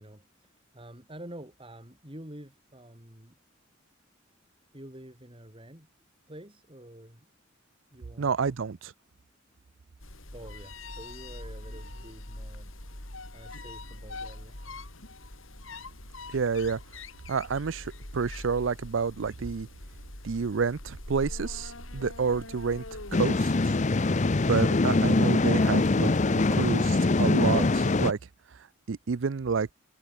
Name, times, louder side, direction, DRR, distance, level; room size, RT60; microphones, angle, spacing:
voice 1, 0.0-3.4 4.7-5.9 6.3-7.3 7.9-8.5 10.3-12.7 13.3-14.6, right 1 dB, 25° right, 4.7 m, -48 dB
voice 2, 8.2-8.9 16.3-16.8 17.3-19.7 20.2-22.8 23.1-23.7 24.5-28.2 28.9-29.7, right 5 dB, 65° right, 0.5 m, -29 dB
sound 1, 10.0-23.2, left 2 dB, 80° left, 6.4 m, -43 dB
sound 2, 23.1-28.1, left 3 dB, 35° left, 0.6 m, -23 dB
head